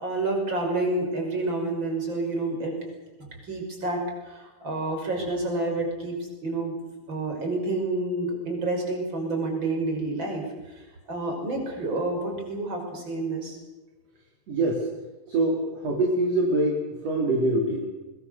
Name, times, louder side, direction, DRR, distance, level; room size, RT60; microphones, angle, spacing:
voice 1, 0.0-2.8 3.2-6.8 7.1-13.6, right 2 dB, 35° right, 2 dB, 6.5 m, -29 dB
voice 2, 14.5-14.9 15.3-17.9, right 2 dB, 55° right, 0 dB, 4.0 m, -24 dB
24.0 x 22.0 x 6.7 m, 1.2 s
omnidirectional pair, 3.6 m